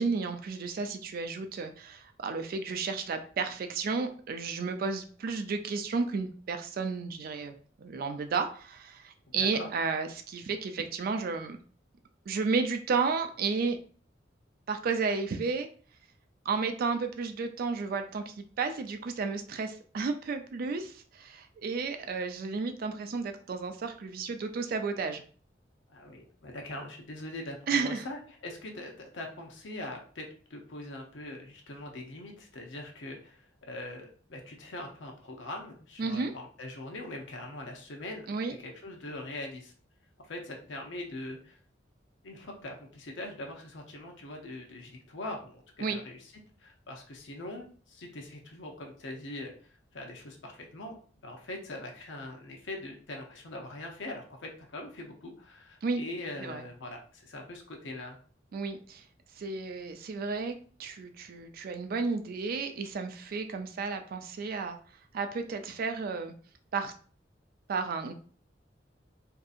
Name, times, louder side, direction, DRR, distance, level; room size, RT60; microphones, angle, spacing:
voice 1, 0.0-11.6 12.3-13.8 14.7-15.7 16.4-25.2 27.7-28.1 36.0-36.3 38.3-38.6 45.8-46.0 55.8-56.0 56.4-56.6 58.5-59.1 59.3-64.8 65.1-66.3 66.7-66.9 67.7-68.1, right 4 dB, 55° right, 7 dB, 0.3 m, -32 dB
voice 2, 9.3-9.7 25.9-38.3 38.6-39.7 40.2-41.6 42.2-46.2 46.6-49.5 49.9-51.0 51.2-58.2, left 1 dB, 80° left, 1 dB, 0.7 m, -42 dB
2.6 x 2.5 x 2.4 m, 0.43 s
head